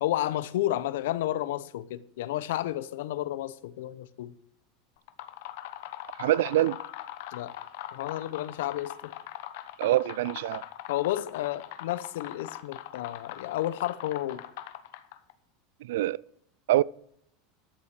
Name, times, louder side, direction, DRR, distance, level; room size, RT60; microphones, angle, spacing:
voice 1, 0.0-4.3 7.3-7.5 7.9-9.1 10.9-14.4, left 14 dB, 80° left, 0.7 m, -31 dB
sound 1, 5.0-15.3, left 13 dB, 60° left, 1.0 m, -42 dB
voice 2, 6.2-6.8 9.8-10.6 15.8-16.2 16.7-16.8, right 15 dB, 80° right, 0.3 m, -25 dB
12.5 x 7.2 x 6.6 m
supercardioid pair, 175°, 0 cm